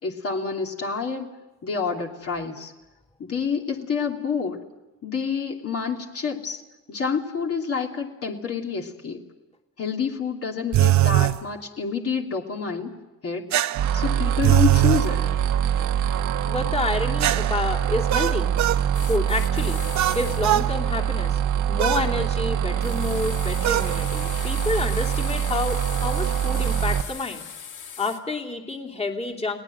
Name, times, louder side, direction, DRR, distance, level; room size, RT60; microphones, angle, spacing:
voice 1, 0.0-1.3 1.6-2.7 3.3-4.6 5.0-6.6 6.9-9.2 9.8-12.9 13.2-13.4 13.9-15.2, left 5 dB, 50° left, 1 dB, 2.9 m, -28 dB
sound 1, 10.7-11.4 13.5-15.1 17.2-18.8 19.9-20.7 21.8-22.1 23.6-23.9, right 14 dB, 65° right, 0.8 m, -21 dB
sound 2, 13.7-27.0, right 9 dB, 80° right, 1.2 m, -24 dB
voice 2, 16.5-18.5 19.1-19.8 20.1-21.4 21.7-27.4 28.0-29.6, left 2 dB, 20° left, 0 dB, 2.9 m, -29 dB
sound 3, 18.9-20.5 22.8-28.2, left 7 dB, 80° left, 2.1 m, -38 dB
30.0 x 18.5 x 7.6 m, 1.0 s
cardioid pair, 90°, 30 cm